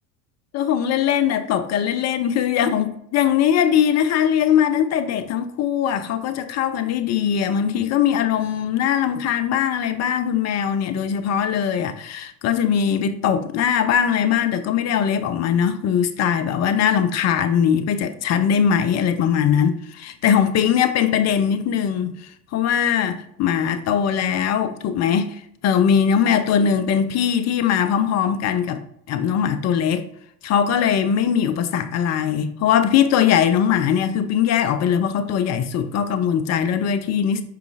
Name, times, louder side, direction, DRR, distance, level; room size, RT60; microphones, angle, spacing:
voice 1, 0.5-22.1 22.5-25.4 25.6-28.8 29.1-30.1 30.4-37.4, left 8 dB, 40° left, 0.4 m, -20 dB
4.8 x 3.1 x 2.4 m
hypercardioid pair, 60°, 44 cm